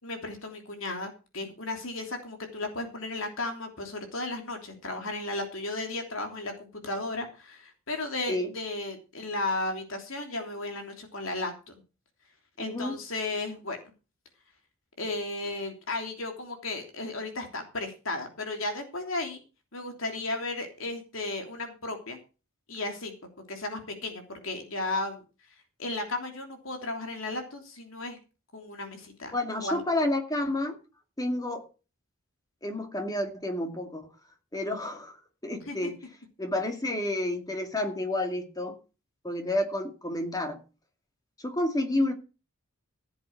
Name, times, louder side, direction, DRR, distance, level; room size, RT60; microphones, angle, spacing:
voice 1, 0.0-11.8 12.6-13.8 15.0-19.4 19.7-22.2 22.7-23.1 23.5-25.2 25.8-28.2 28.5-29.8 35.7-35.9, left 2 dB, 70° left, 3.2 m, -34 dB
voice 2, 12.6-13.0 29.3-30.8 31.2-31.6 32.6-34.1 34.5-35.1 35.4-36.0 36.4-38.8 39.2-40.6 41.4-42.1, left 1 dB, 20° left, 2.3 m, -30 dB
16.0 x 8.0 x 4.7 m
head